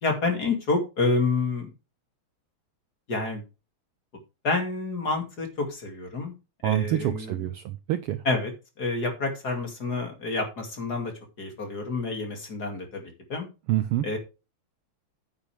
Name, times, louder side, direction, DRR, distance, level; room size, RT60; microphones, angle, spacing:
voice 1, 0.0-1.7 3.1-3.4 4.4-6.3 6.6-7.3 8.3-8.5 8.8-11.1 11.4-13.0 13.3-13.5 14.0-14.2, left 3 dB, 35° left, 2.7 m, -28 dB
voice 2, 6.6-8.2 13.7-14.1, right 13 dB, 85° right, 1.3 m, -27 dB
9.9 x 9.2 x 3.3 m
omnidirectional pair, 3.3 m